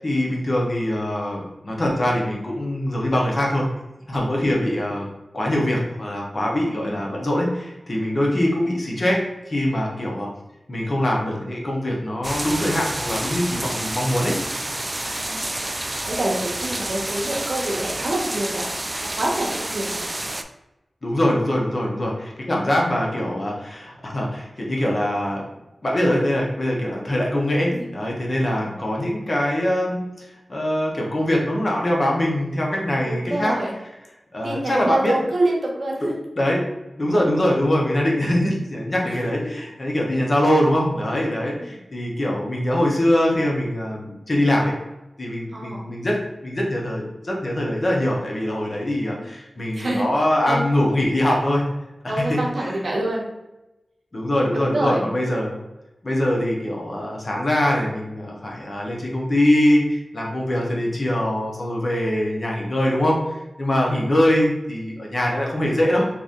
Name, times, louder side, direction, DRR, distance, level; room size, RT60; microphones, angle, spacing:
voice 1, 0.0-3.7 4.1-5.1 5.3-10.3 10.7-14.4 21.0-25.4 25.8-33.6 34.3-35.1 36.4-36.6 37.0-44.7 45.2-46.2 46.4-51.6 52.2-52.7 54.1-55.6 56.0-66.1, left 1 dB, 50° left, -2 dB, 1.0 m, -23 dB
voice 2, 6.6-7.0 8.3-8.4 15.0-15.4 16.2-18.7 19.0-20.0 27.8-27.9 28.4-28.7 33.0-33.7 34.4-36.1 39.0-39.5 40.1-40.3 41.6-41.8 45.5-45.9 49.7-50.1 50.5-50.9 52.1-53.3 54.5-55.1, right 1 dB, 65° right, -2 dB, 0.9 m, -27 dB
sound 1, 12.2-20.4, right 1 dB, 30° right, 0.3 m, -29 dB
3.0 x 2.6 x 3.7 m, 0.96 s
cardioid pair, 40°, 0 cm